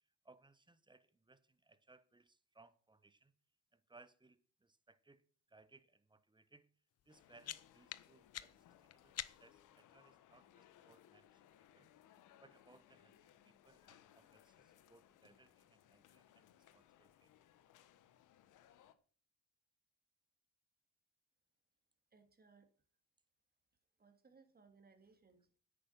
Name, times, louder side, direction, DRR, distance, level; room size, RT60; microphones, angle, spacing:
voice 1, 0.2-3.3 3.7-5.2 5.5-6.7 7.1-11.9 12.4-16.5 16.7-17.3, right 3 dB, 15° right, 1.3 m, -67 dB
sound 1, 7.0-9.7, left 11 dB, 55° left, 0.8 m, -49 dB
sound 2, 7.1-18.9, left 11 dB, 85° left, 1.3 m, -66 dB
voice 2, 22.1-22.7 24.0-25.6, right 4 dB, 30° right, 3.0 m, -66 dB
10.5 x 8.9 x 6.0 m
cardioid pair, 90°, 30 cm